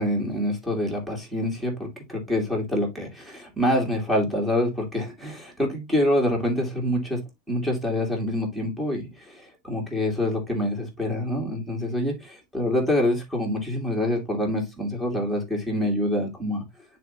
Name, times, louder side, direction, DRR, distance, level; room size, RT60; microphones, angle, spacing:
voice 1, 0.0-7.2 7.5-16.6, left 1 dB, 5° right, 2.6 m, -26 dB
9.6 x 4.4 x 2.6 m
supercardioid pair, 170°, 0 cm